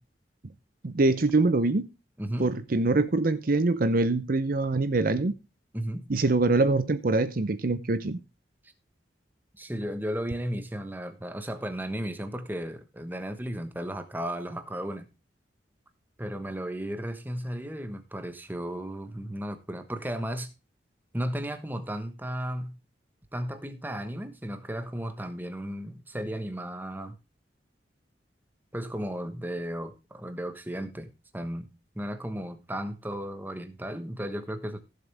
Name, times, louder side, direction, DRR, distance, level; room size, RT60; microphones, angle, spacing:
voice 1, 0.8-1.9 2.4-5.3 6.1-8.2, right 2 dB, 50° right, 0.7 m, -24 dB
voice 2, 2.2-2.6 5.7-6.1 9.6-15.1 16.2-20.5 21.1-22.8 23.3-27.2 28.7-31.7 31.9-34.8, equal, 10° right, 1.2 m, -34 dB
16.0 x 7.3 x 3.4 m
head